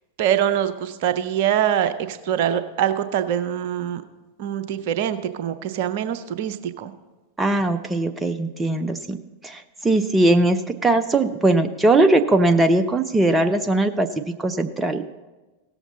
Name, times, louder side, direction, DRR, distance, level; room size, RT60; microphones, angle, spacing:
voice 1, 0.2-4.0 4.4-6.9, right 10 dB, 50° right, 10 dB, 0.7 m, -24 dB
voice 2, 7.4-9.2 9.4-15.0, right 2 dB, 10° right, 7 dB, 0.5 m, -20 dB
17.0 x 7.2 x 4.0 m, 1.2 s
figure-of-eight pair, 90°, 0 cm